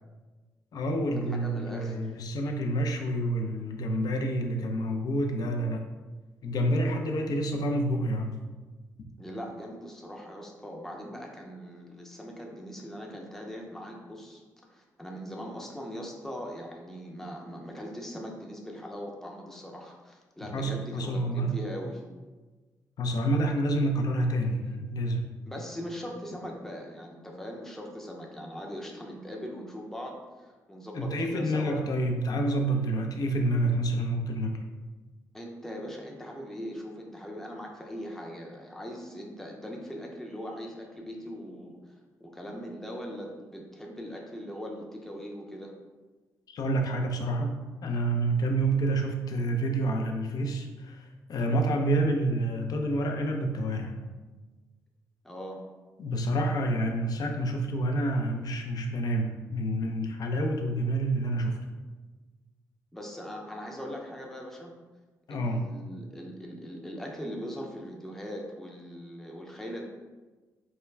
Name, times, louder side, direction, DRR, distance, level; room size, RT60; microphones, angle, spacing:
voice 1, 0.7-5.9 6.4-8.4 20.5-21.6 23.0-25.3 30.9-34.6 46.5-54.0 56.0-61.6 65.3-65.6, right 1 dB, 60° left, 3 dB, 0.4 m, -28 dB
voice 2, 1.3-2.1 9.2-22.0 25.5-31.8 35.3-45.7 55.2-55.6 62.9-64.7 65.3-69.8, equal, 5° left, 0 dB, 0.5 m, -40 dB
2.3 x 2.1 x 3.2 m, 1.3 s
supercardioid pair, 60°, 7 cm